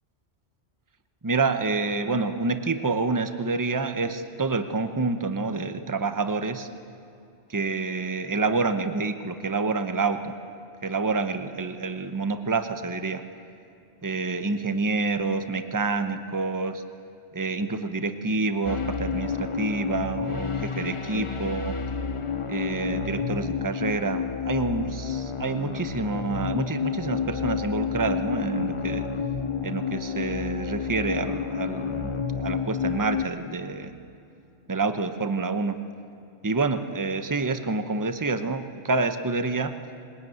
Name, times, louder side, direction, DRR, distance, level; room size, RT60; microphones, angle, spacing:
voice 1, 1.2-6.7 7.5-10.3 10.8-13.2 14.0-16.8 17.3-21.8 22.5-29.1 29.6-32.1 32.4-33.9 34.7-35.8 36.4-39.7, right 3 dB, 20° right, 9 dB, 0.9 m, -28 dB
sound 1, 18.6-33.2, left 6 dB, 30° left, 0.7 m, -30 dB
22.0 x 20.0 x 9.4 m, 2.7 s
omnidirectional pair, 1.2 m